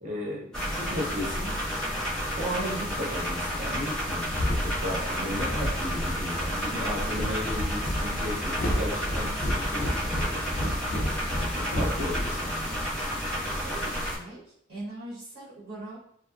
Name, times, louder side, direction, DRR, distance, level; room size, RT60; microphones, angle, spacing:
voice 1, 0.0-1.6 2.4-10.6 11.5-12.8, left 1 dB, 40° right, -5 dB, 0.5 m, -35 dB
sound 1, 0.5-14.2, equal, 5° left, 0.7 m, -31 dB
sound 2, 4.3-12.8, equal, 45° left, 0.4 m, -31 dB
voice 2, 13.5-14.4 14.7-16.0, right 2 dB, 60° right, -9 dB, 1.0 m, -41 dB
2.6 x 2.2 x 2.3 m, 0.69 s
head